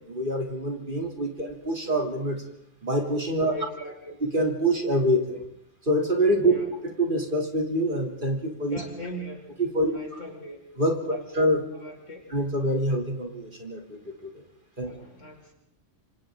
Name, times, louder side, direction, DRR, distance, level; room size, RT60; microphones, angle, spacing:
voice 1, 0.0-2.4 2.8-3.5 4.2-5.4 5.8-6.5 7.0-8.8 9.7-10.0 10.8-11.6 12.3-14.4 14.8-14.9, right 1 dB, 40° right, 1 dB, 3.4 m, -25 dB
voice 2, 3.4-4.2 6.4-6.7 8.7-9.5 9.8-10.6 11.1-11.3 11.7-12.2 14.8-15.5, equal, 70° left, 0 dB, 5.6 m, -40 dB
27.0 x 26.5 x 3.9 m, 0.75 s
omnidirectional pair, 1.3 m